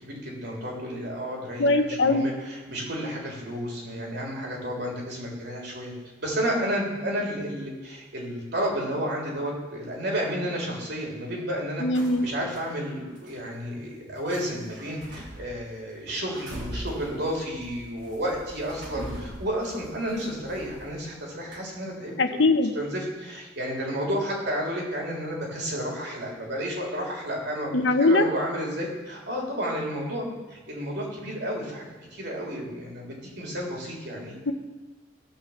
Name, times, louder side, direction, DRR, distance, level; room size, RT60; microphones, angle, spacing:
voice 1, 0.0-5.9 6.2-11.9 12.2-22.4 22.7-34.4, equal, 65° right, -2 dB, 3.6 m, -31 dB
voice 2, 1.6-2.2 11.8-12.3 22.2-22.7 27.7-28.3 34.5-34.6, left 2 dB, 80° left, 7 dB, 1.0 m, -21 dB
sound 1, 11.9-12.7 13.2-13.3 14.2-21.2 21.5-21.6, right 1 dB, 85° right, 3.1 m, -42 dB
16.5 x 5.8 x 7.3 m, 1.2 s
head